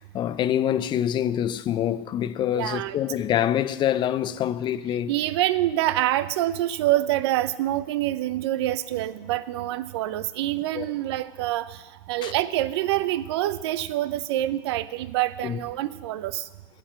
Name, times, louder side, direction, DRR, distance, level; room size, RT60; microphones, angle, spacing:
voice 1, 0.0-5.1 10.8-10.9 12.2-12.3 15.4-15.6, left 10 dB, 35° left, 0.5 m, -25 dB
voice 2, 2.5-3.0 5.1-16.5, right 14 dB, 80° right, 0.6 m, -26 dB
8.7 x 7.6 x 7.6 m
supercardioid pair, 120°, 14 cm